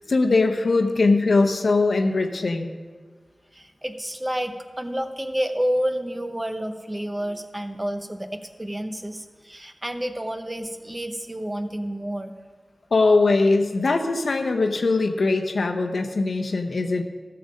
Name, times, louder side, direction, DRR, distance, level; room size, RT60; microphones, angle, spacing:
voice 1, 0.1-2.7 12.9-17.0, left 3 dB, 85° left, 5 dB, 0.8 m, -21 dB
voice 2, 3.5-12.3, equal, 20° right, 7 dB, 0.8 m, -29 dB
13.5 x 6.9 x 5.2 m, 1.5 s
wide cardioid pair, 60°, 0 cm